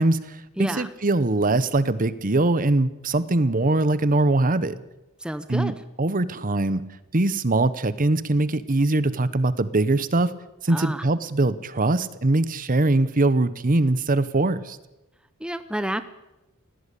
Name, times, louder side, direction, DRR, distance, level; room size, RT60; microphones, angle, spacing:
voice 1, 0.0-4.8 5.5-5.7 6.0-6.8 7.1-10.3 10.6-14.8, right 2 dB, 40° right, 15 dB, 1.0 m, -22 dB
voice 2, 0.6-0.9 5.2-5.8 10.7-11.0 15.4-16.0, right 1 dB, 5° right, 11 dB, 0.7 m, -29 dB
19.5 x 17.0 x 8.4 m, 1.0 s
head